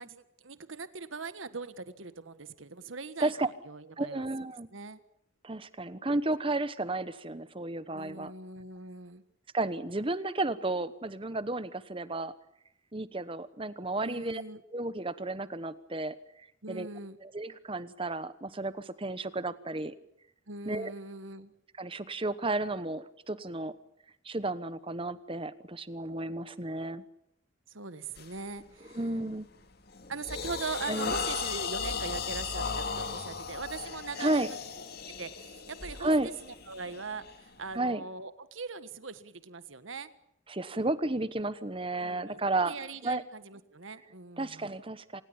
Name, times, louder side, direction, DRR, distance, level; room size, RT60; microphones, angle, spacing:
voice 1, 0.0-4.3 4.7-5.0 7.9-9.2 14.0-14.6 16.6-17.2 20.5-21.5 27.7-29.0 30.1-34.6 35.2-40.1 42.0-44.7, right 4 dB, 75° right, 13 dB, 1.5 m, -41 dB
voice 2, 4.0-4.7 5.4-8.3 9.5-12.3 12.9-14.4 14.7-16.2 16.7-16.9 17.2-19.9 20.6-20.9 21.8-23.7 24.2-27.0 28.9-29.5 30.9-31.1 34.2-34.5 36.0-36.3 37.7-38.0 40.5-42.7 43.0-43.2 44.4-45.2, right 2 dB, 25° right, 15 dB, 1.1 m, -32 dB
sound 1, 28.2-28.4 28.9-29.2 29.6-37.7, left 5 dB, 50° left, 2.3 m, -37 dB
26.5 x 19.5 x 8.7 m, 0.76 s
head